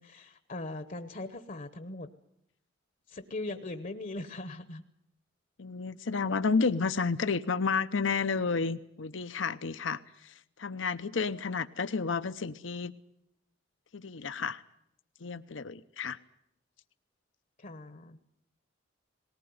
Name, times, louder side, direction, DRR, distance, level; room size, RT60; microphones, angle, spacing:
voice 1, 0.0-2.1 3.1-4.8 17.6-18.2, left 2 dB, 45° left, 11 dB, 1.0 m, -40 dB
voice 2, 5.6-10.3 10.6-12.9 13.9-14.6 15.2-16.2, left 5 dB, 80° left, 12 dB, 0.8 m, -31 dB
19.5 x 18.5 x 9.4 m, 0.76 s
head